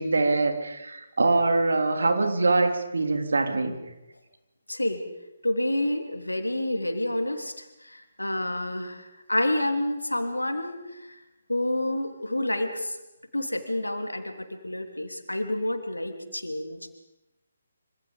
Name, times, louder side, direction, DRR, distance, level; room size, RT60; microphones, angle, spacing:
voice 1, 0.0-3.7, right 3 dB, 60° right, 6 dB, 3.3 m, -23 dB
voice 2, 4.7-5.0 5.4-7.5 7.9-11.0 11.5-13.0 13.3-16.9, left 1 dB, 80° left, 6 dB, 3.3 m, -29 dB
26.0 x 26.0 x 5.3 m, 0.97 s
figure-of-eight pair, 140°, 0 cm